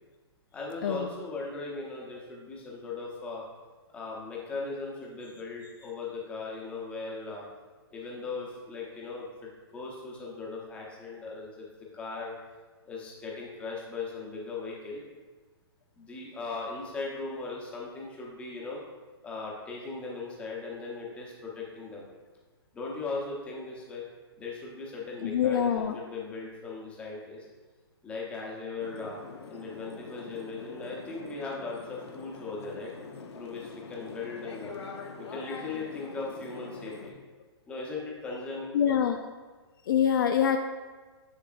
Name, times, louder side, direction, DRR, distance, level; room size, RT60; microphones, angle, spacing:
voice 1, 0.5-3.4 3.9-7.5 7.9-11.7 11.9-12.4 12.9-15.0 15.9-18.8 19.2-22.1 22.7-24.0 24.4-27.5 28.0-29.2 29.5-32.9 33.3-34.7 35.2-37.1 37.7-38.7, left 3 dB, 10° left, -3 dB, 0.8 m, -38 dB
voice 2, 25.2-26.0 38.7-39.2 39.9-40.6, left 8 dB, 55° left, 5 dB, 0.4 m, -25 dB
sound 1, 28.8-37.1, left 5 dB, 80° left, 0.8 m, -44 dB
7.1 x 6.7 x 2.5 m, 1.3 s
hypercardioid pair, 165°, 14 cm